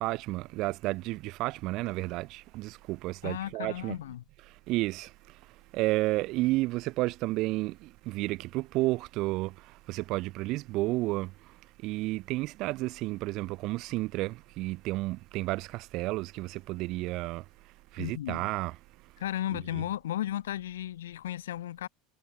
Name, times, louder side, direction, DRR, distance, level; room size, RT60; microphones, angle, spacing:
voice 1, 0.0-4.0 4.5-5.4 5.7-17.4 17.9-18.7 19.5-19.8, right 20 dB, 50° right, 0.4 m, -32 dB
voice 2, 3.2-4.2 18.0-18.5 19.2-21.9, left 12 dB, 65° left, 0.8 m, -34 dB
figure-of-eight pair, 75°, 0 cm